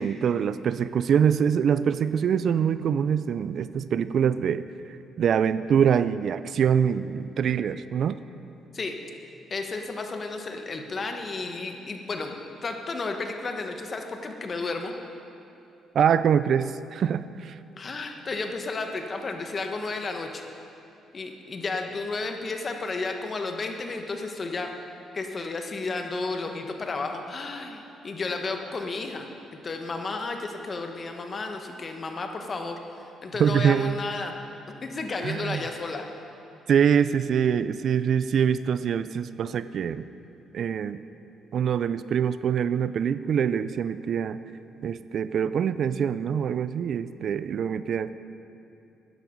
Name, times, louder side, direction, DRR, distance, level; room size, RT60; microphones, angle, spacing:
voice 1, 0.0-4.7 5.2-8.2 15.9-17.6 33.4-34.0 35.2-35.6 36.7-40.0 40.5-41.0 41.5-44.4 44.8-48.1, right 8 dB, 60° right, 14 dB, 0.4 m, -24 dB
voice 2, 9.5-12.3 12.6-14.9 17.8-20.4 21.1-24.7 25.1-29.3 29.6-32.8 33.2-34.3 34.8-36.0, left 3 dB, 40° left, 4 dB, 1.3 m, -32 dB
13.0 x 10.5 x 5.3 m, 2.9 s
cardioid pair, 85°, 0 cm